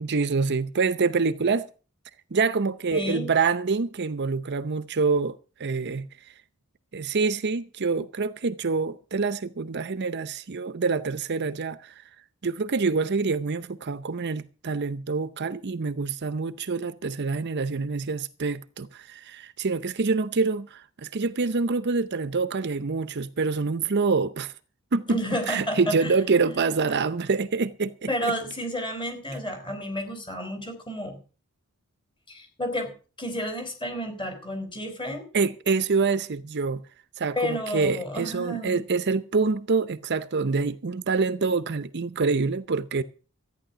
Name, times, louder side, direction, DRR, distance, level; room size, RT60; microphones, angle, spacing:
voice 1, 0.0-1.7 2.3-6.3 6.9-12.0 12.4-24.5 24.9-25.2 25.5-28.1 35.3-36.8 37.2-43.0, right 4 dB, 50° right, 0.7 m, -26 dB
voice 2, 2.9-3.3 25.1-26.2 28.1-31.2 32.3-32.9 33.2-35.3 37.4-38.8, equal, 20° left, 4.3 m, -31 dB
14.0 x 9.7 x 6.7 m
head